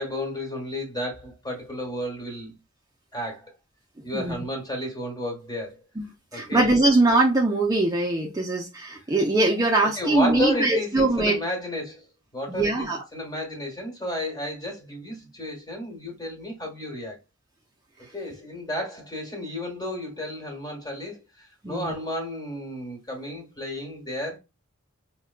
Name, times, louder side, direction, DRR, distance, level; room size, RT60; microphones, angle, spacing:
voice 1, 0.0-2.5 3.1-3.5 4.0-5.8 6.3-6.7 10.0-12.0 12.3-12.7 13.1-17.2 18.1-24.4, left 1 dB, 20° left, 1.4 m, -32 dB
voice 2, 6.3-11.4 12.5-13.0 21.6-21.9, right 2 dB, 15° right, 0.5 m, -22 dB
5.0 x 2.2 x 2.3 m
head